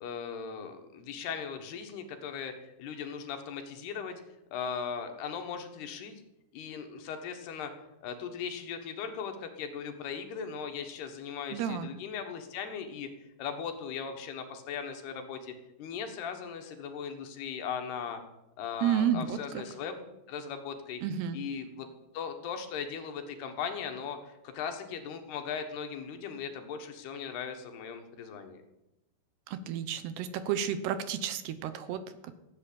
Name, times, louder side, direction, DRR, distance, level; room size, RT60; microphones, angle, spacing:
voice 1, 0.0-4.2 4.5-6.2 6.5-7.7 8.0-13.1 13.4-15.5 15.8-18.2 18.6-21.0 21.3-21.9 22.1-28.6, left 7 dB, 70° left, 5 dB, 3.3 m, -38 dB
voice 2, 11.5-11.9 18.8-19.6 21.0-21.4 29.5-32.3, right 8 dB, 75° right, 12 dB, 2.8 m, -31 dB
16.0 x 8.4 x 8.6 m, 0.92 s
omnidirectional pair, 5.0 m